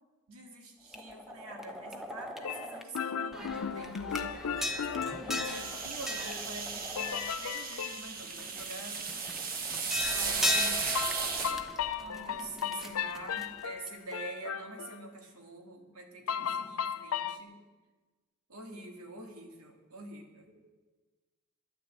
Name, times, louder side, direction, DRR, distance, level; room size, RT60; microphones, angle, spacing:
voice 1, 0.3-9.8 10.1-11.3 12.0-17.6 18.5-20.5, right 2 dB, 80° right, 3 dB, 2.1 m, -47 dB
sound 1, 0.9-3.0 3.3-7.7 8.2-14.1, left 1 dB, ahead, 0.7 m, -38 dB
sound 2, 2.4-6.3 7.0-8.1 11.0-15.0 16.3-17.4, left 8 dB, 75° left, 0.4 m, -36 dB
voice 2, 3.1-3.6 12.0-13.0 20.5-20.6, right 2 dB, 60° right, -2 dB, 2.1 m, -54 dB
sound 3, 5.4-11.5, right 5 dB, 40° right, 1.2 m, -35 dB
11.0 x 9.4 x 8.6 m, 1.3 s
head